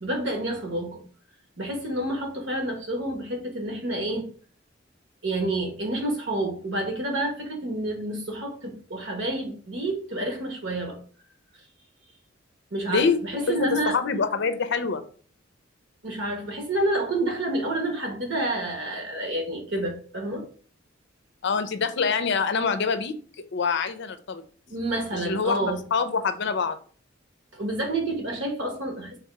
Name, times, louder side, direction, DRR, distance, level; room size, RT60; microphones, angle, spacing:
voice 1, 0.0-1.0 1.6-4.3 5.2-11.0 12.7-14.0 16.0-20.5 24.7-25.8 27.5-29.2, right 1 dB, 65° right, 1.2 m, -29 dB
voice 2, 12.9-13.2 13.5-15.0 21.4-23.2 23.5-24.4 25.2-26.8, left 5 dB, 60° left, 0.5 m, -25 dB
3.5 x 2.8 x 4.5 m
head